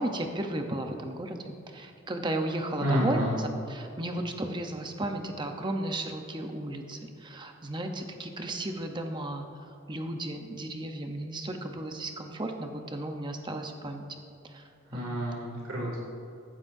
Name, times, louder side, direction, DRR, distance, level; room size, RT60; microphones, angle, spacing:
voice 1, 0.0-9.4 9.9-14.1 14.5-14.6 14.9-15.2, right 1 dB, 20° right, 4 dB, 0.9 m, -34 dB
voice 2, 2.8-3.3 14.9-16.0, equal, 85° right, -5 dB, 2.9 m, -29 dB
14.5 x 12.5 x 2.7 m, 2.6 s
head